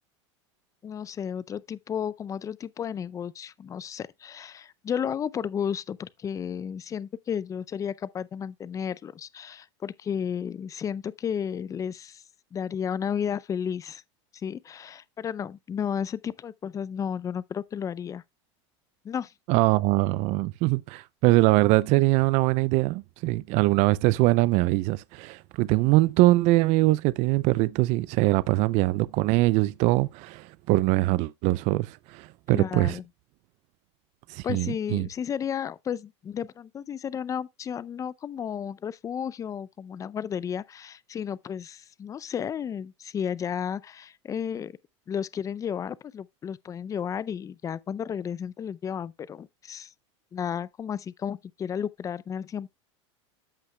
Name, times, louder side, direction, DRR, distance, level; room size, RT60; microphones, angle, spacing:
voice 1, 0.8-12.2 12.5-14.0 14.3-18.2 19.0-19.3 32.5-33.0 34.4-44.7 45.1-49.9 50.3-52.7, left 8 dB, 20° left, 0.4 m, -33 dB
voice 2, 19.5-33.0 34.3-35.1, right 20 dB, 50° right, 0.4 m, -23 dB
13.5 x 5.7 x 2.2 m
supercardioid pair, 115°, 15 cm